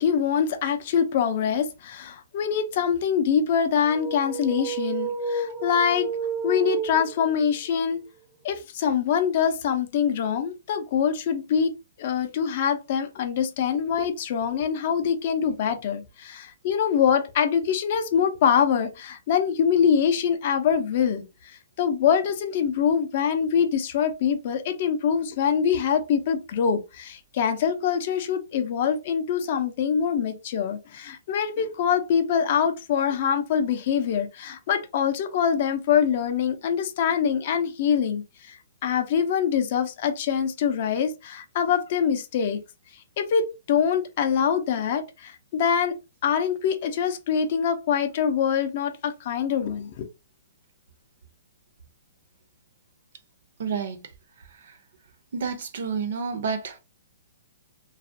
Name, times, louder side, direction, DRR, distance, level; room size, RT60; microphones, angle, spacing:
voice 1, 0.0-6.1 6.4-8.0 8.4-11.7 12.0-21.2 21.8-38.6 38.8-42.6 43.2-46.0 46.2-50.0, left 7 dB, 45° left, 0.4 m, -24 dB
sound 1, 3.9-7.5, right 4 dB, 10° right, 0.5 m, -30 dB
voice 2, 53.6-54.0 55.3-56.8, right 5 dB, 60° right, 0.5 m, -29 dB
2.3 x 2.1 x 2.5 m
hypercardioid pair, 165°, 0 cm